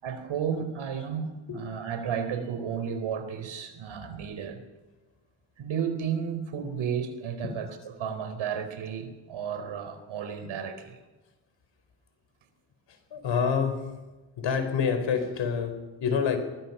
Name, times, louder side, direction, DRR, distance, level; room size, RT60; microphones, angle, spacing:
voice 1, 0.0-4.6 5.6-11.0, right 7 dB, 75° right, 8 dB, 4.2 m, -33 dB
voice 2, 13.1-14.0 14.4-16.4, left 6 dB, 65° left, 8 dB, 4.6 m, -27 dB
22.5 x 20.5 x 5.7 m, 1.2 s
cardioid pair, 110°, 48 cm